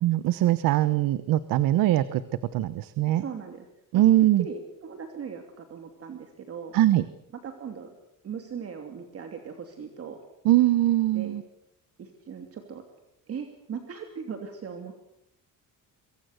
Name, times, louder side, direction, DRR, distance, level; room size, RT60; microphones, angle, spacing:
voice 1, 0.0-2.2 2.5-3.2 3.9-4.4 6.7-7.0 10.4-11.4, right 14 dB, 85° right, 14 dB, 1.2 m, -22 dB
voice 2, 3.1-3.7 3.9-4.1 4.4-6.7 7.4-7.9 8.2-10.2 11.1-11.4 12.0-12.8 13.3-14.9, right 6 dB, 45° right, 5 dB, 2.9 m, -39 dB
26.5 x 23.5 x 6.7 m, 0.81 s
cardioid pair, 145°, 33 cm